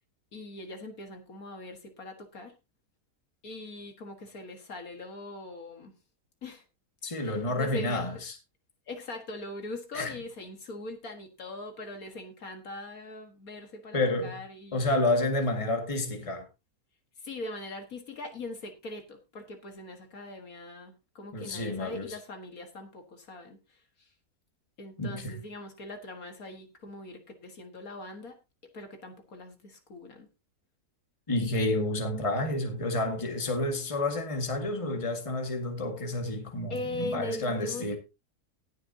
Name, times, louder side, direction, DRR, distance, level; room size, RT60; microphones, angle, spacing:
voice 1, 0.3-2.6 3.4-5.9 6.4-6.6 7.2-8.2 8.9-15.0 17.2-24.1 24.8-28.4 28.7-30.3 36.7-38.0, left 2 dB, 60° left, 2.0 m, -41 dB
voice 2, 7.0-8.4 9.9-10.1 13.9-14.4 14.7-16.4 21.3-22.2 25.0-25.4 31.3-38.0, left 2 dB, 20° left, 1.8 m, -30 dB
19.0 x 6.7 x 2.7 m
omnidirectional pair, 1.7 m